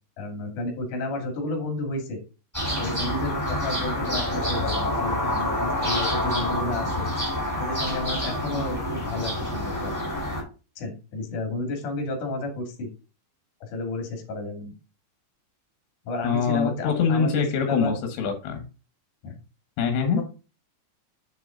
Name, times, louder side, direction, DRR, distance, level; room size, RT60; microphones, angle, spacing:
voice 1, 0.2-2.2 2.8-7.1 7.6-10.0 10.8-12.9 13.6-14.7 16.0-18.0 19.2-19.4 20.1-20.2, left 2 dB, 45° left, 3 dB, 3.5 m, -32 dB
sound 1, 2.5-10.4, left 1 dB, 5° left, 3.4 m, -27 dB
voice 2, 16.2-18.6 19.8-20.2, left 6 dB, 70° left, 5 dB, 3.3 m, -24 dB
7.4 x 6.0 x 3.9 m, 0.32 s
omnidirectional pair, 5.6 m